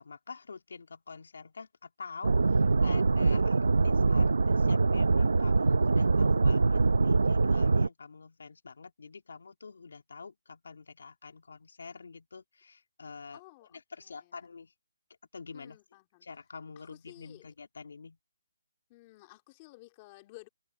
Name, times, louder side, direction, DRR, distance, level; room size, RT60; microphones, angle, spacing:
voice 1, 0.0-13.4 13.7-14.7 15.3-15.8 16.2-18.2, left 5 dB, 75° left, 2.9 m, -47 dB
sound 1, 2.2-7.9, right 3 dB, 85° right, 0.8 m, -24 dB
voice 2, 13.3-14.3 15.5-16.3 16.8-17.5 18.9-20.5, left 22 dB, 25° left, 2.6 m, -54 dB
hypercardioid pair, 165°, 0 cm